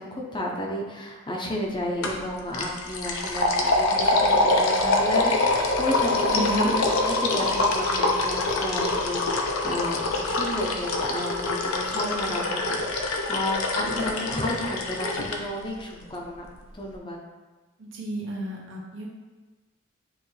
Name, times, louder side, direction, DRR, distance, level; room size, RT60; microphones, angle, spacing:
voice 1, 0.0-16.5 16.7-17.2, left 1 dB, 20° left, -1 dB, 0.7 m, -32 dB
sound 1, 2.0-2.2 2.5-15.4, left 2 dB, 85° left, 0.8 m, -25 dB
voice 2, 6.3-6.7 17.8-19.1, right 1 dB, 65° right, -3 dB, 1.3 m, -32 dB
9.5 x 3.2 x 3.2 m, 1.3 s
head